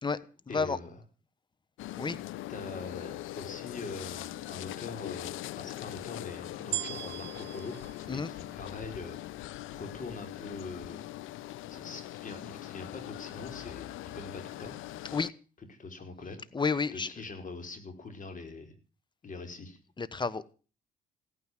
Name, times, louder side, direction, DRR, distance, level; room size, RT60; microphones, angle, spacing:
voice 1, 0.5-1.0 2.5-9.2 9.7-11.0 11.7-14.7 15.7-16.4 16.9-18.7 19.2-19.8, left 3 dB, 40° left, 6 dB, 4.8 m, -43 dB
sound 1, 1.8-15.3, left 15 dB, 90° left, 0.7 m, -41 dB
sound 2, 6.7-9.1 9.8-9.9, right 13 dB, 65° right, 0.7 m, -39 dB
voice 2, 16.5-17.1 20.0-20.4, left 4 dB, 25° left, 17 dB, 1.2 m, -30 dB
16.5 x 9.6 x 7.7 m, 0.37 s
cardioid pair, 90°, 20 cm